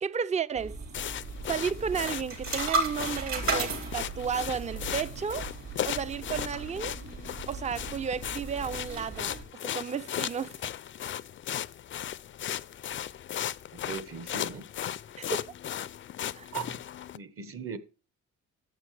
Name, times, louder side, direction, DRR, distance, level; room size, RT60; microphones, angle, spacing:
voice 1, 0.0-0.8 1.5-5.5 5.8-7.0 7.5-9.3 9.6-10.6 15.2-15.5 16.3-16.5, right 6 dB, 25° right, 0.4 m, -33 dB
sound 1, 0.5-9.4, right 3 dB, 65° right, 4.2 m, -36 dB
sound 2, 0.9-17.2, left 10 dB, 40° left, 0.4 m, -37 dB
voice 2, 13.7-14.7 16.5-16.8 17.1-17.8, right 6 dB, 50° right, 1.2 m, -38 dB
11.0 x 7.7 x 3.2 m
cardioid pair, 90°, 30 cm